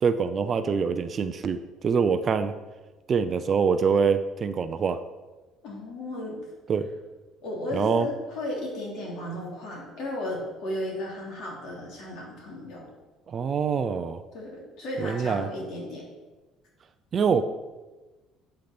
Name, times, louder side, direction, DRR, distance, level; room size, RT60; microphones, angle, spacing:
voice 1, 0.0-2.5 3.1-5.0 6.7-6.9 7.7-8.1 13.3-14.2 15.0-15.5 17.1-17.4, right 6 dB, 30° right, 10 dB, 0.5 m, -25 dB
voice 2, 5.6-6.4 7.4-12.9 14.3-16.0, left 1 dB, 55° left, -3 dB, 3.6 m, -34 dB
8.6 x 7.9 x 6.0 m, 1.2 s
cardioid pair, 170°, 0 cm